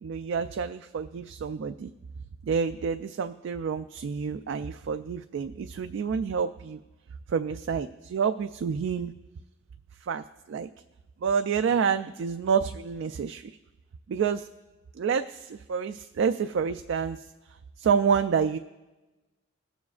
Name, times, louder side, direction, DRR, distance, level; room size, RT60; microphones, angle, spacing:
voice 1, 0.0-1.9 2.5-6.8 7.3-9.1 10.1-10.7 11.2-13.5 14.1-14.5 15.0-17.2 17.8-18.6, right 6 dB, 65° right, 8 dB, 0.3 m, -28 dB
21.0 x 7.1 x 2.4 m, 1.1 s
head